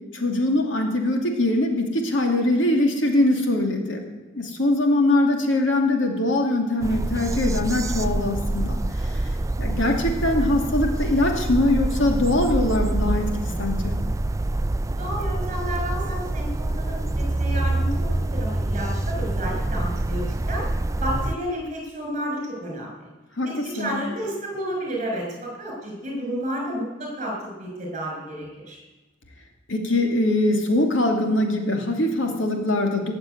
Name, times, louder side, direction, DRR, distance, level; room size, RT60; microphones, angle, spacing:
voice 1, 0.1-4.0 4.3-8.8 9.6-13.9 23.4-23.9 29.7-33.1, left 1 dB, 75° left, 3 dB, 2.7 m, -22 dB
sound 1, 6.8-21.4, right 2 dB, 15° right, 0.4 m, -26 dB
voice 2, 15.0-20.6 21.0-22.9 23.4-28.8, equal, 40° right, 0 dB, 6.2 m, -31 dB
18.0 x 7.3 x 9.3 m, 1.1 s
head